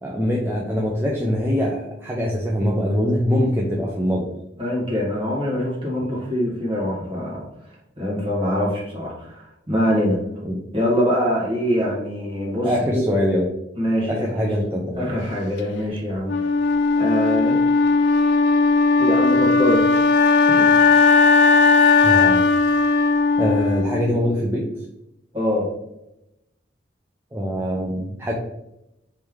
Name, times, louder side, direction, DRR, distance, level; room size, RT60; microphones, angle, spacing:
voice 1, 0.0-4.3 10.4-10.6 12.6-13.5 14.1-15.1 20.5-20.7 22.0-22.4 23.4-24.7 27.3-28.3, equal, 15° right, -2 dB, 0.4 m, -23 dB
voice 2, 4.6-7.5 8.0-10.2 10.7-13.0 13.8-14.3 15.0-16.3 17.0-17.6 19.0-20.0 25.3-25.7, equal, 30° right, -4 dB, 1.4 m, -23 dB
Wind instrument woodwind instrument, 16.3-24.3, left 4 dB, 70° left, 0.3 m, -17 dB
3.2 x 3.1 x 3.5 m, 0.86 s
head